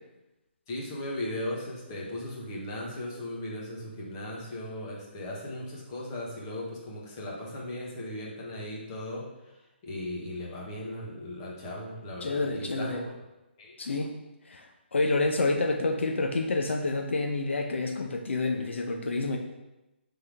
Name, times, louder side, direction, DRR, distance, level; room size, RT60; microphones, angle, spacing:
voice 1, 0.7-9.3 9.8-13.1 13.6-13.7, left 1 dB, 20° left, -4 dB, 1.2 m, -37 dB
voice 2, 12.2-13.1 13.8-14.2 14.5-19.4, left 3 dB, 80° left, 3 dB, 0.8 m, -28 dB
5.5 x 3.7 x 4.8 m, 1.0 s
hypercardioid pair, 170°, 6 cm